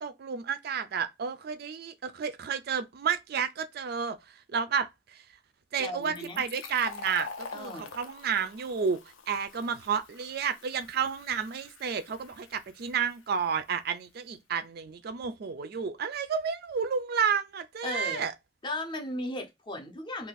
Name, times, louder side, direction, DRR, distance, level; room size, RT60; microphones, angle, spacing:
voice 1, 0.0-5.3 5.7-9.0 9.3-18.3, right 6 dB, 50° right, 0.3 m, -31 dB
voice 2, 5.8-6.4 7.5-7.9 17.8-18.3 18.6-20.3, left 1 dB, 25° left, 0.6 m, -36 dB
Fill (with liquid), 6.0-13.4, left 4 dB, 75° left, 0.5 m, -45 dB
2.5 x 2.3 x 3.9 m
head